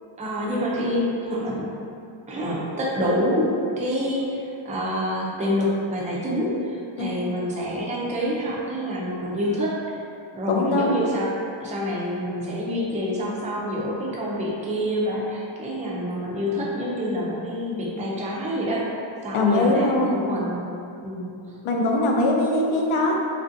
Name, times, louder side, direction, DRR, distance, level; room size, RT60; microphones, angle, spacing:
voice 1, 0.2-1.7 2.3-3.5 3.8-9.8 10.3-11.3 11.6-18.9 19.2-20.6 21.0-21.6, equal, 15° right, -4 dB, 0.3 m, -27 dB
voice 2, 7.0-7.4 10.5-11.1 19.3-20.2 21.6-23.2, left 2 dB, 75° left, 0 dB, 0.6 m, -22 dB
3.2 x 2.5 x 2.5 m, 2.5 s
wide cardioid pair, 145°, 49 cm